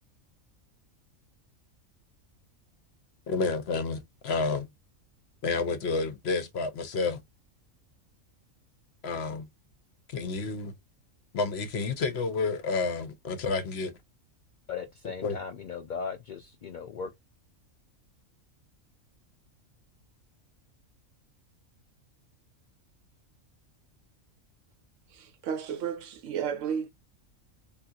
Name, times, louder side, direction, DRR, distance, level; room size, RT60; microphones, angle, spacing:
voice 1, 3.3-4.7 5.4-7.2 9.0-9.5 10.1-10.7 11.3-13.9 15.2-15.4, left 4 dB, 60° left, 0.8 m, -30 dB
voice 2, 14.7-17.1, left 6 dB, 90° left, 0.4 m, -37 dB
voice 3, 25.1-26.9, right 7 dB, 70° right, 0.9 m, -33 dB
3.6 x 2.8 x 2.3 m
omnidirectional pair, 1.4 m